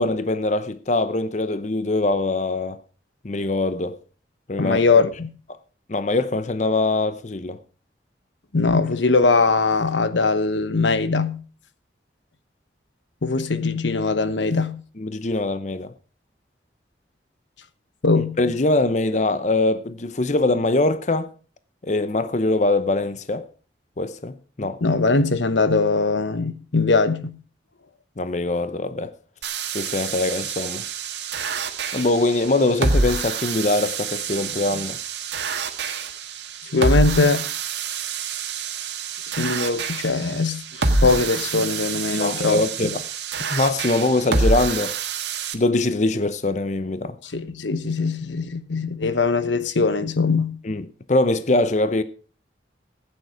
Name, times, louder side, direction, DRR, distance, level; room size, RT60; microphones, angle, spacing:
voice 1, 0.0-2.8 3.2-4.0 4.5-4.8 5.9-7.6 15.0-15.9 18.1-21.3 21.8-23.4 24.0-24.8 28.2-29.1 29.7-30.8 31.9-35.0 42.1-43.0 43.5-45.0 45.5-47.2 50.6-52.0, left 2 dB, 40° left, 0.7 m, -23 dB
voice 2, 4.6-5.3 8.5-11.4 13.2-14.8 18.0-18.4 24.6-27.4 36.7-37.5 39.4-42.9 47.2-50.6, left 3 dB, 90° left, 1.0 m, -21 dB
sound 1, 29.4-45.5, right 3 dB, 80° right, 1.7 m, -27 dB
15.5 x 9.3 x 4.9 m
head